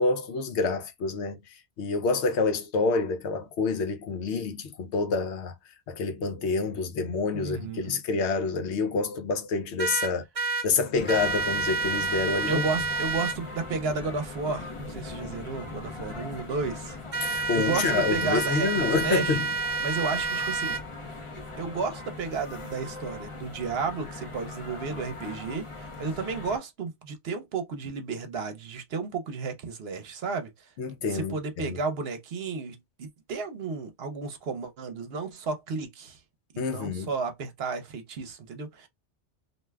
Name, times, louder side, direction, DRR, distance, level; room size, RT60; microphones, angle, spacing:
voice 1, 0.0-1.4 1.8-5.5 5.9-10.2 10.6-12.6 17.2-19.4 30.8-31.8 36.6-37.1, left 4 dB, 75° left, 0.9 m, -27 dB
voice 2, 7.3-8.0 12.5-17.0 17.5-19.4 19.8-20.8 21.1-30.7 31.1-36.2 36.5-38.9, right 4 dB, 65° right, 0.9 m, -33 dB
sound 1, 9.8-10.7 11.1-13.4 17.1-20.8, right 4 dB, 50° right, 0.4 m, -29 dB
sound 2, 10.9-26.6, left 3 dB, 35° left, 0.6 m, -40 dB
2.5 x 2.2 x 3.3 m
omnidirectional pair, 1.2 m